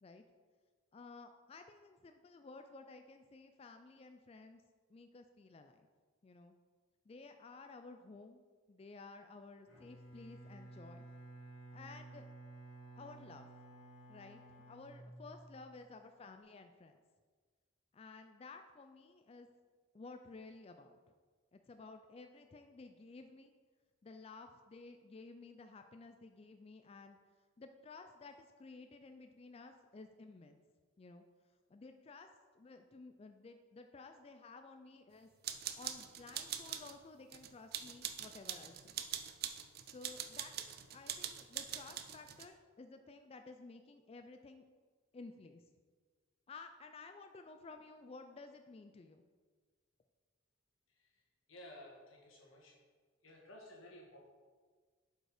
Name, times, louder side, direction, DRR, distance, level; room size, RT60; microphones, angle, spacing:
voice 1, 0.9-4.6 4.9-5.9 6.2-6.5 7.1-8.4 8.7-11.1 11.7-12.2 13.0-13.5 14.1-17.0 17.9-19.5 19.9-21.0 21.5-23.5 24.0-27.2 27.6-30.6 31.0-31.2 31.7-32.3 32.5-35.3 35.8-38.9 39.9-44.6 45.1-45.7 46.5-49.2, left 3 dB, 30° left, 7 dB, 0.3 m, -54 dB
Bowed string instrument, 9.7-15.7, right 2 dB, 70° left, 1.8 m, -54 dB
sound 1, 35.4-37.0 37.3-42.5, right 10 dB, 50° right, 0.5 m, -43 dB
voice 2, 51.5-52.8 53.2-54.2, left 1 dB, 90° left, -1 dB, 1.7 m, -55 dB
7.6 x 5.3 x 4.9 m, 1.5 s
head